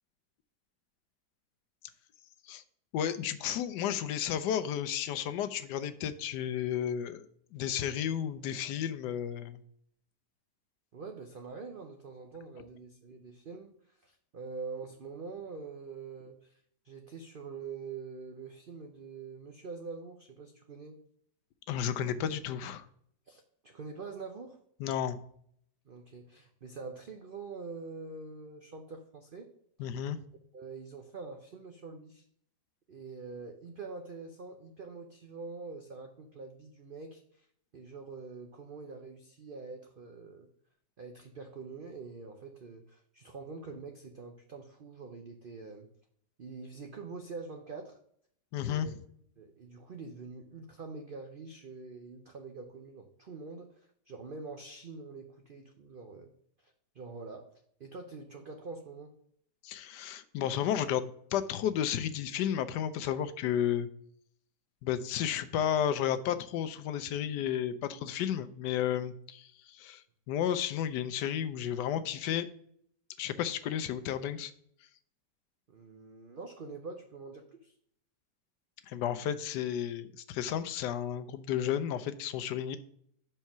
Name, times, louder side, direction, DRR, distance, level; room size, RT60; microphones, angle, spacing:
voice 1, 2.9-9.6 21.7-22.9 24.8-25.2 29.8-30.2 48.5-49.0 59.6-63.9 64.8-72.5 73.2-74.5 78.9-82.8, left 9 dB, 80° left, 11 dB, 1.2 m, -32 dB
voice 2, 10.9-16.6 16.8-21.0 23.3-24.6 25.9-29.5 30.5-32.2 32.9-37.5 37.7-40.5 41.0-45.9 46.4-48.0 48.6-49.0 49.4-53.7 54.1-56.3 56.6-57.5 57.8-59.1 75.7-77.7, right 4 dB, 65° right, 4 dB, 0.5 m, -45 dB
5.5 x 4.6 x 5.8 m, 0.67 s
omnidirectional pair, 1.8 m